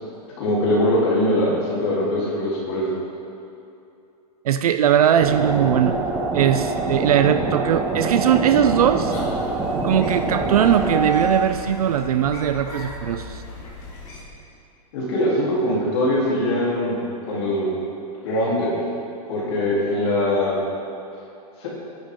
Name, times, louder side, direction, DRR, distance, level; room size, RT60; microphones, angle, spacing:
voice 1, 0.4-3.0 14.9-17.0 17.3-17.7 18.2-18.7 19.3-20.6 21.6-21.7, left 1 dB, 40° left, -6 dB, 3.5 m, -22 dB
voice 2, 4.4-5.9 6.3-9.1 9.8-13.4, right 9 dB, 65° right, 9 dB, 0.6 m, -19 dB
sound 1, 5.2-11.4, right 3 dB, 10° right, 0.8 m, -25 dB
sound 2, 8.5-14.2, left 2 dB, 20° left, 2.5 m, -37 dB
24.5 x 11.0 x 3.8 m, 2.6 s
supercardioid pair, 180°, 20 cm